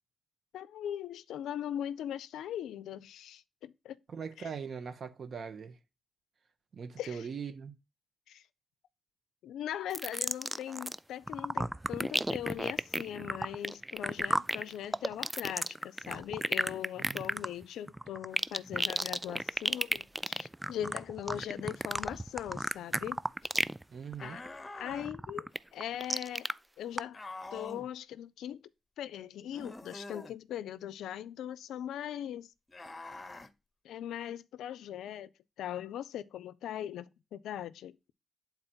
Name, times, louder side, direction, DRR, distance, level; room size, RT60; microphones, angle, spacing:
voice 1, 0.5-4.0 4.4-4.5 7.0-7.3 8.3-8.4 9.4-23.2 24.2-24.4 24.8-26.5 26.8-27.2 27.5-28.7 29.0-32.5 33.8-35.3 35.6-38.0, left 10 dB, 90° left, 0.4 m, -40 dB
voice 2, 4.1-5.7 6.7-7.7 17.0-17.2 23.9-24.4, right 6 dB, 70° right, 1.1 m, -41 dB
sound 1, 9.9-11.0 11.3-23.8 24.1-24.5 24.9-26.5 27.0-27.1, right 1 dB, 15° right, 0.4 m, -33 dB
sound 2, 24.2-25.1 27.1-27.9 29.5-30.3 32.7-33.5, left 2 dB, 30° left, 0.9 m, -45 dB
8.6 x 4.1 x 4.4 m
supercardioid pair, 40°, 0 cm